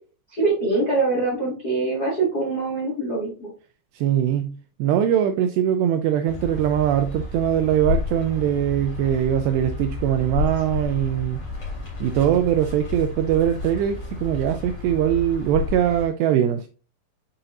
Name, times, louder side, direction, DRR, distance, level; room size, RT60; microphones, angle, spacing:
voice 1, 0.3-3.5, right 3 dB, 55° left, 1.0 m, -24 dB
voice 2, 3.9-4.5 4.8-11.4 12.0-16.7, right 10 dB, 85° right, 2.4 m, -22 dB
sound 1, 6.3-16.0, left 4 dB, 35° left, 3.4 m, -31 dB
8.0 x 5.7 x 2.6 m
omnidirectional pair, 5.4 m